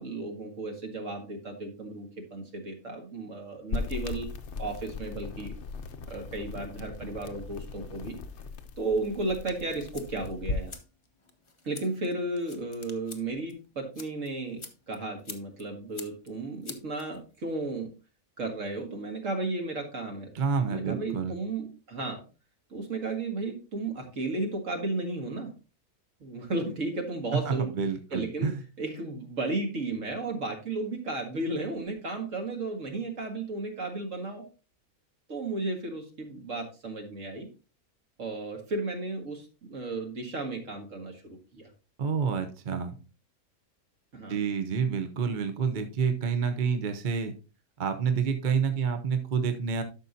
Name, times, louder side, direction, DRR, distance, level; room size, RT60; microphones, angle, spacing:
voice 1, 0.0-4.3 4.6-5.5 6.1-8.2 8.8-10.7 11.6-17.9 18.4-20.3 20.7-22.2 22.7-25.5 26.2-27.7 28.1-34.4 35.3-37.5 38.2-41.7 44.1-44.4, right 2 dB, 60° right, 3 dB, 2.1 m, -34 dB
sound 1, 3.7-10.7, left 4 dB, 55° left, 0.9 m, -38 dB
sound 2, 9.6-17.5, left 4 dB, 25° left, 0.7 m, -49 dB
voice 2, 20.3-21.3 27.5-28.6 42.0-42.9 44.3-47.3 47.8-49.8, right 6 dB, 40° right, 7 dB, 0.8 m, -28 dB
12.0 x 6.0 x 2.7 m, 0.32 s
omnidirectional pair, 1.5 m